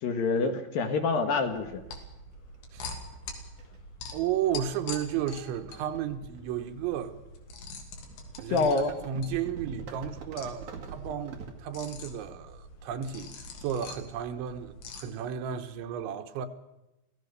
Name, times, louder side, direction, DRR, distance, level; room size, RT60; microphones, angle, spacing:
voice 1, 0.0-1.8 8.5-8.9, left 4 dB, 65° left, 2.5 m, -26 dB
sound 1, 1.5-15.0, left 3 dB, 80° left, 4.9 m, -45 dB
sound 2, 1.6-1.7 3.1-3.3 3.6-3.8 4.4-4.6 4.9-7.0 8.1-11.5, right 6 dB, 50° right, 2.8 m, -44 dB
voice 2, 4.1-7.2 8.4-8.7 9.1-16.5, right 9 dB, 85° right, 3.5 m, -33 dB
26.0 x 16.5 x 6.6 m
omnidirectional pair, 5.2 m